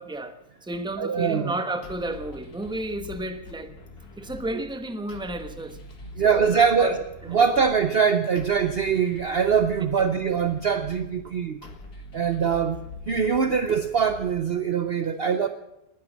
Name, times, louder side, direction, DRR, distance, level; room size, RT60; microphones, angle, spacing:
voice 1, 0.0-3.7 4.2-5.8 6.2-7.0 7.2-7.4 10.0-10.1, right 1 dB, 5° right, 8 dB, 1.0 m, -32 dB
voice 2, 1.0-1.5 6.2-7.0 7.3-11.6 12.1-12.8 13.1-15.5, right 6 dB, 50° right, 10 dB, 0.8 m, -23 dB
sound 1, 1.8-14.9, left 3 dB, 85° left, 2.3 m, -44 dB
19.0 x 10.5 x 7.4 m, 0.90 s
omnidirectional pair, 1.6 m